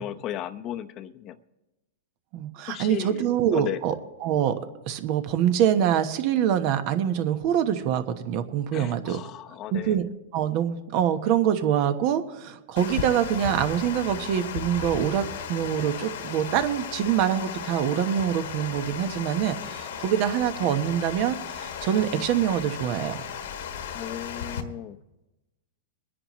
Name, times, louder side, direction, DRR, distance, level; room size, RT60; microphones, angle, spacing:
voice 1, 0.0-1.4 2.7-3.8 8.7-10.0 23.9-25.0, left 11 dB, 35° left, 9 dB, 0.7 m, -35 dB
voice 2, 2.3-3.9 4.2-4.5 4.9-9.2 9.7-10.1 10.3-15.2 15.5-23.3, right 9 dB, 50° right, 10 dB, 1.1 m, -25 dB
Water, 12.8-24.6, left 8 dB, 75° left, 1.3 m, -35 dB
23.0 x 10.0 x 3.1 m, 1.0 s
hypercardioid pair, 125°, 0 cm